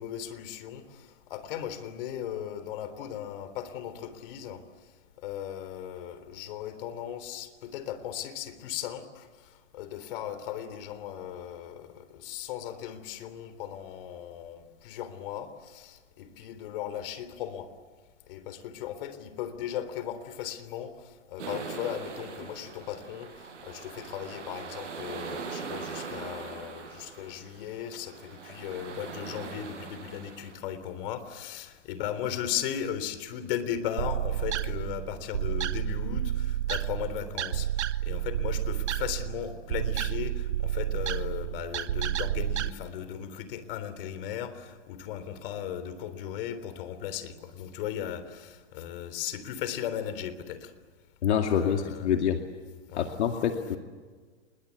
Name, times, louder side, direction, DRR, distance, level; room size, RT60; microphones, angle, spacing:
voice 1, 0.0-4.6 5.2-17.7 18.3-50.7 51.5-52.1 52.9-53.1, left 10 dB, 50° left, 12 dB, 3.6 m, -37 dB
sound 1, 21.4-30.6, right 5 dB, 85° right, 6.5 m, -41 dB
sound 2, 34.0-42.7, right 11 dB, 70° right, 1.3 m, -30 dB
voice 2, 51.2-52.4 53.0-53.8, left 8 dB, 70° left, 4 dB, 2.4 m, -26 dB
27.0 x 22.5 x 8.4 m, 1.5 s
hypercardioid pair, 145°, 35 cm